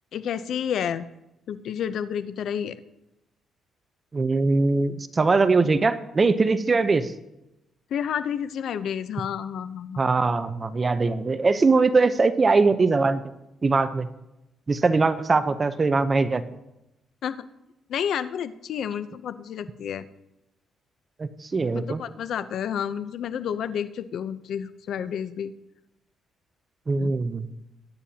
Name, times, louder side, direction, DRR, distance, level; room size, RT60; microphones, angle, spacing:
voice 1, 0.1-1.1 1.5-2.8 7.9-10.0 17.2-17.4 17.9-20.1 21.7-25.5 27.0-27.1, left 8 dB, 70° left, 13 dB, 0.7 m, -30 dB
voice 2, 4.1-7.1 10.0-13.2 13.6-14.1 14.7-16.4 21.2-22.0 26.9-27.5, right 3 dB, 30° right, 12 dB, 0.7 m, -21 dB
21.0 x 10.0 x 2.8 m, 0.91 s
cardioid pair, 90°, 0 cm